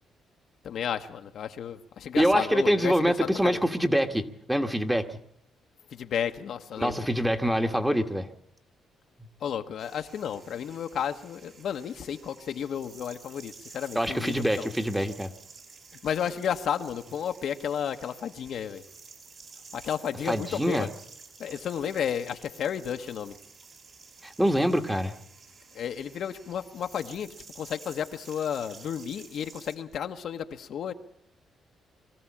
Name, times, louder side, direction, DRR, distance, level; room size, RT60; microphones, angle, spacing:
voice 1, 0.6-3.6 5.9-7.1 9.4-14.7 16.0-18.8 19.7-20.9 21.4-23.3 25.7-30.9, left 8 dB, 65° left, 6 dB, 1.2 m, -32 dB
voice 2, 2.1-5.1 6.8-8.3 13.9-15.3 20.3-20.9 24.2-25.1, equal, 5° right, 6 dB, 1.5 m, -25 dB
sound 1, 9.8-29.8, right 4 dB, 50° right, 3.6 m, -51 dB
23.0 x 14.0 x 8.7 m, 0.74 s
cardioid pair, 90°, 0 cm